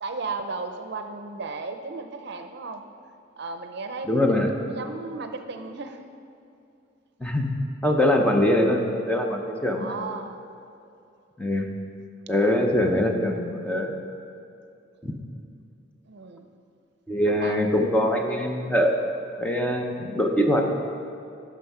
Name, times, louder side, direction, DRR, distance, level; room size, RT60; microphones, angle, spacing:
voice 1, 0.0-2.9 3.4-4.3 4.7-6.0 9.8-10.4 16.1-16.5 17.2-17.6, right 3 dB, 60° right, 7 dB, 0.6 m, -35 dB
voice 2, 4.1-4.5 7.2-7.6 7.8-9.9 11.4-11.7 12.3-13.9 15.0-15.1 17.1-19.0 19.4-20.7, left 1 dB, 5° left, 2 dB, 0.7 m, -23 dB
9.3 x 6.2 x 5.6 m, 2.6 s
head